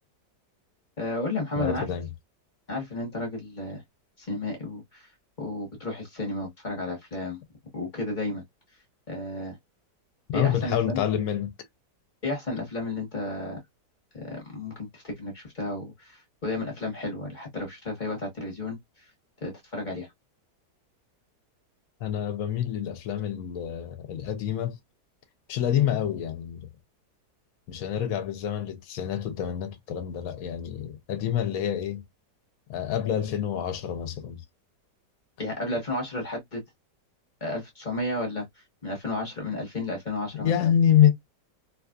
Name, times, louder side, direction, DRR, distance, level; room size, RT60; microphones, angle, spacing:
voice 1, 1.0-1.9 2.7-3.8 4.2-5.1 5.4-7.4 7.7-8.4 9.1-9.6 10.3-11.0 12.2-13.6 14.1-19.1 19.4-20.1 35.4-36.6 37.4-38.5 38.8-40.7, left 2 dB, 35° left, 0.9 m, -32 dB
voice 2, 1.6-2.1 10.3-11.5 22.0-24.8 25.5-26.7 27.7-32.0 32.7-34.4 40.4-41.1, left 10 dB, 65° left, 0.9 m, -27 dB
2.8 x 2.3 x 2.2 m
omnidirectional pair, 1.9 m